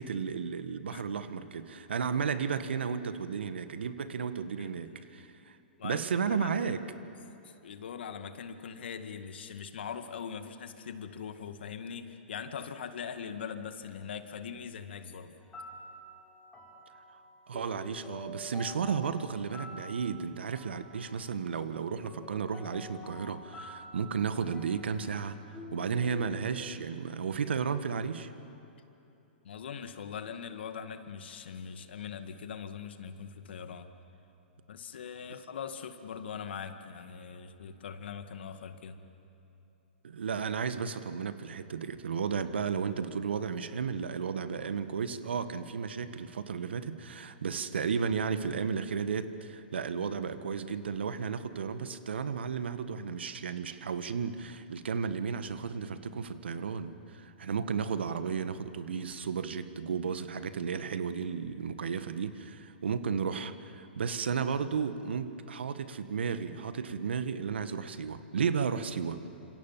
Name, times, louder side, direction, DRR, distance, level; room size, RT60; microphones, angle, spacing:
voice 1, 0.0-5.6 5.8-6.8 17.5-28.3 40.0-69.2, right 6 dB, 75° right, 11 dB, 1.6 m, -33 dB
voice 2, 5.8-6.7 7.4-15.4 29.4-33.9 34.7-39.0, left 7 dB, 70° left, 8 dB, 2.0 m, -41 dB
sound 1, 15.4-26.5, left 1 dB, 15° left, 5.9 m, -49 dB
30.0 x 26.5 x 7.5 m, 2.8 s
hypercardioid pair, 120°, 6 cm